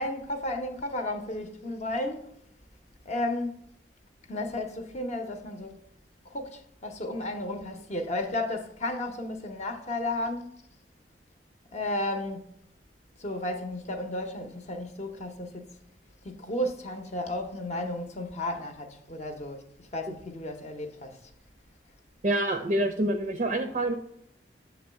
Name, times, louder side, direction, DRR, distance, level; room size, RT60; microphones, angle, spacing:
voice 1, 0.0-2.3 3.0-3.6 4.3-5.8 6.2-10.6 11.7-12.5 13.2-15.8 16.2-21.2, left 1 dB, 40° left, 0.7 m, -33 dB
voice 2, 22.2-23.9, right 1 dB, 40° right, 0.4 m, -26 dB
7.1 x 3.0 x 5.6 m
head